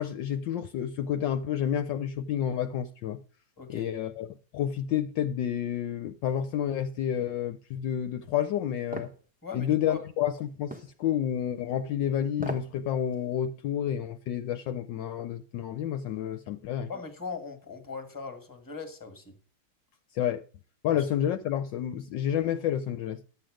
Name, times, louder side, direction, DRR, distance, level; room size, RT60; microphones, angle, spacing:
voice 1, 0.0-3.2 3.7-4.3 4.5-9.1 9.5-16.9 20.1-20.4 20.8-23.2, left 10 dB, 70° left, 1.2 m, -30 dB
voice 2, 3.6-3.9 9.4-10.0 16.9-19.3 20.9-21.0, left 5 dB, 10° left, 1.6 m, -40 dB
sound 1, 8.9-9.2 10.7-10.9 12.3-12.7 13.1-13.2, right 1 dB, 10° right, 0.5 m, -37 dB
11.5 x 7.8 x 5.0 m
omnidirectional pair, 2.2 m